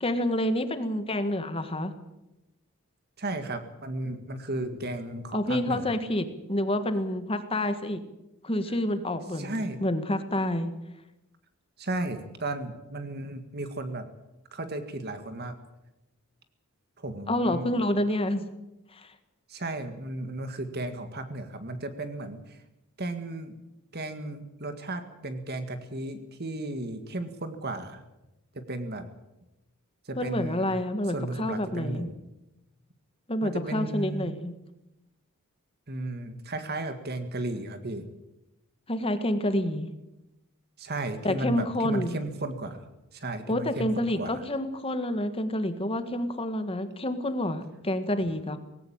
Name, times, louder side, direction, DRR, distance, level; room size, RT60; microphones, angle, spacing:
voice 1, 0.0-1.9 5.3-8.0 8.4-10.7 17.3-18.5 18.9-19.1 30.2-32.1 33.3-34.5 38.9-39.9 41.2-42.2 43.5-48.6, left 1 dB, 25° left, 9 dB, 1.6 m, -28 dB
voice 2, 3.2-5.9 9.4-9.8 11.8-14.1 14.5-15.6 17.0-17.7 19.5-22.6 23.0-23.5 23.9-28.0 28.6-29.1 30.1-30.8 31.1-32.2 33.4-34.3 35.9-38.1 40.8-42.8 43.1-44.4, right 2 dB, 45° right, 8 dB, 1.9 m, -34 dB
19.0 x 17.0 x 8.8 m, 0.93 s
head